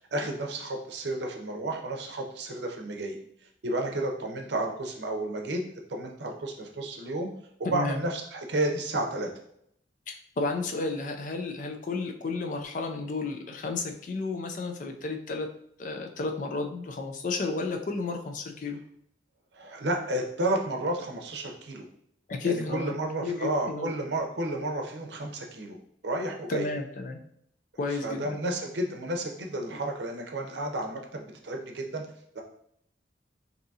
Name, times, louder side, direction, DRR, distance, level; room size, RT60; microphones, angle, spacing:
voice 1, 0.1-3.2 3.6-5.6 5.9-7.3 7.6-9.3 19.5-21.9 22.4-25.8 26.0-26.7 27.9-32.0 32.3-32.4, right 1 dB, 70° right, 2 dB, 0.6 m, -31 dB
voice 2, 7.6-8.0 10.1-15.5 15.8-18.8 22.3-22.9 23.2-23.9 26.5-27.2 27.8-28.4, left 3 dB, 45° left, 4 dB, 0.3 m, -32 dB
3.5 x 2.7 x 2.7 m, 0.70 s
head